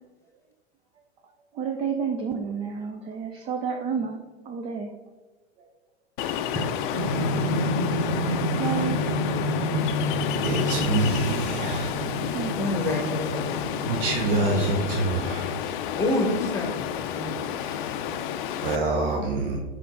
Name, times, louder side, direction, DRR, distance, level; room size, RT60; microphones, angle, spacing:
voice 1, 1.5-4.2 4.5-4.9 8.0-8.1 8.5-9.0 12.2-12.5, right 6 dB, 15° right, 3 dB, 0.3 m, -30 dB
Ocean, 6.2-18.8, left 9 dB, 50° left, 0.5 m, -30 dB
sound 1, 6.9-15.5, equal, 35° right, 2.0 m, -29 dB
voice 2, 10.4-12.0 13.8-15.7 17.5-17.9 18.6-19.6, right 3 dB, 55° right, 1 dB, 0.9 m, -26 dB
voice 3, 12.6-13.4 16.0-17.4, left 1 dB, 10° left, 3 dB, 1.2 m, -27 dB
5.6 x 4.9 x 3.7 m, 1.3 s
figure-of-eight pair, 95°, 33 cm